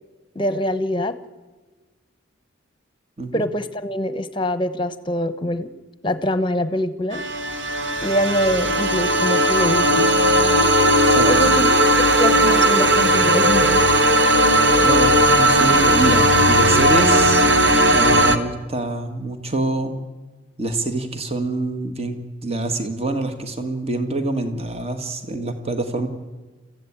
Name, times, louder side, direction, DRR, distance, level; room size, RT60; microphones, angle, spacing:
voice 1, 0.3-1.1 3.3-5.7 6.0-7.2 8.0-10.1 11.3-11.7 12.2-13.8, equal, 25° left, 12 dB, 1.1 m, -24 dB
sound 1, 7.1-18.4, right 1 dB, 55° right, 1.6 m, -16 dB
voice 2, 14.4-17.4 17.9-19.9 20.6-22.2 22.4-26.1, right 2 dB, 30° right, 7 dB, 1.7 m, -25 dB
27.5 x 15.0 x 8.7 m, 1.3 s
head